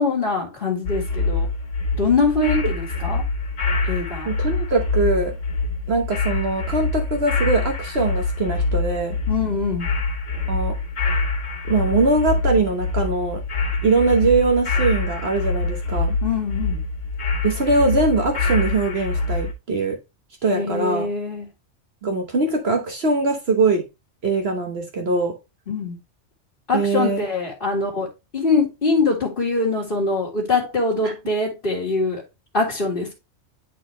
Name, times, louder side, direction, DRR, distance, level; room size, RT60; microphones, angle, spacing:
voice 1, 0.0-1.5 2.0-3.2 3.9-4.3 9.3-9.9 16.2-16.8 20.5-21.5 25.7-26.0 26.7-28.1 28.3-32.2 32.5-33.1, left 3 dB, 45° left, 1.8 m, -23 dB
sound 1, 0.9-19.5, left 3 dB, 80° left, 1.6 m, -25 dB
voice 2, 4.2-5.3 5.9-9.2 10.5-10.8 11.7-13.4 13.8-16.2 17.4-20.0 20.4-21.1 22.0-23.8 24.2-25.3 26.7-27.2 31.0-31.1, right 3 dB, 55° right, 1.3 m, -21 dB
9.4 x 4.2 x 3.1 m
omnidirectional pair, 1.3 m